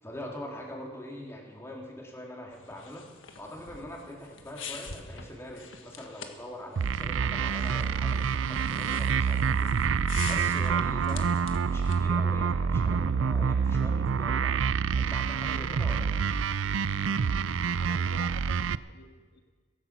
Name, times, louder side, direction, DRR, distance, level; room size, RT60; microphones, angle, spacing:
voice 1, 0.0-3.1 3.4-9.7 10.3-16.4, left 1 dB, 15° left, 0 dB, 2.9 m, -43 dB
sound 1, 2.5-12.1, left 6 dB, 85° left, 1.6 m, -46 dB
sound 2, 6.8-18.8, right 6 dB, 85° right, 0.4 m, -27 dB
voice 2, 17.8-19.4, left 3 dB, 60° left, 5 dB, 1.7 m, -48 dB
16.0 x 15.0 x 6.0 m, 1.4 s
head